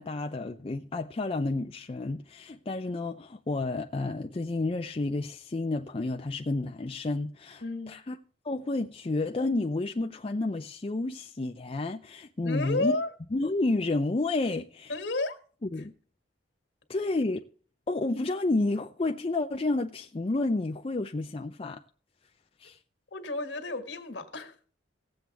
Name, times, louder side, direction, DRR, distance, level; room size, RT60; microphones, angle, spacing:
voice 1, 0.0-8.2 8.4-12.9 13.3-14.9 15.7-15.9 16.9-17.4 17.9-21.8 22.6-22.8, left 2 dB, 30° left, 0.5 m, -30 dB
voice 2, 7.6-7.9 12.4-13.1 14.9-15.4 15.8-15.9 23.1-24.7, left 2 dB, 65° left, 1.7 m, -32 dB
17.5 x 7.8 x 3.4 m
head